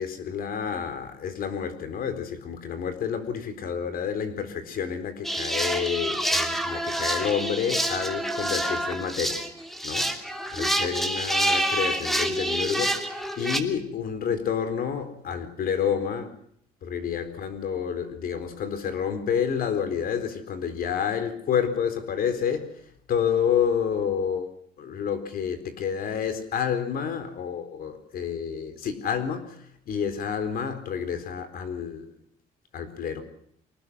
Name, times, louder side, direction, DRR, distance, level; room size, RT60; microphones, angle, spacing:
voice 1, 0.0-9.4 9.8-16.3 16.8-22.8 23.1-24.5 24.8-32.1 32.7-33.2, left 7 dB, 60° left, 10 dB, 4.2 m, -29 dB
sound 1, 5.2-13.6, right 1 dB, ahead, 2.9 m, -27 dB
25.0 x 19.5 x 6.3 m, 0.67 s
cardioid pair, 110°, 17 cm